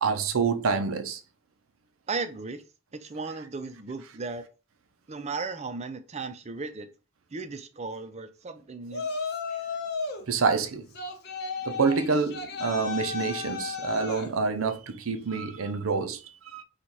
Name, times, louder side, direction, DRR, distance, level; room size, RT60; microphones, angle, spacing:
voice 1, 0.0-1.2 10.3-10.9 11.6-16.6, right 5 dB, 80° right, 0.6 m, -27 dB
voice 2, 2.1-2.6 3.0-4.4 5.1-6.9 7.3-9.1, right 4 dB, 30° right, 0.5 m, -35 dB
Yell, 8.9-10.3 10.9-14.3, left 4 dB, 50° left, 0.8 m, -34 dB
4.1 x 2.4 x 4.6 m
head